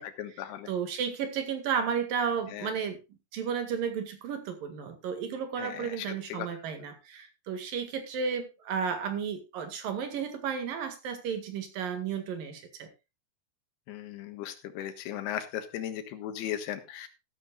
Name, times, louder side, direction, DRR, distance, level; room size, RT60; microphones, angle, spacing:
voice 1, 0.0-0.7 2.5-2.7 5.6-6.5 13.9-17.1, left 11 dB, 85° left, 9 dB, 3.4 m, -37 dB
voice 2, 0.7-3.0 3.3-12.9, right 7 dB, 65° right, 7 dB, 3.5 m, -33 dB
14.0 x 13.5 x 2.4 m, 0.26 s
omnidirectional pair, 4.5 m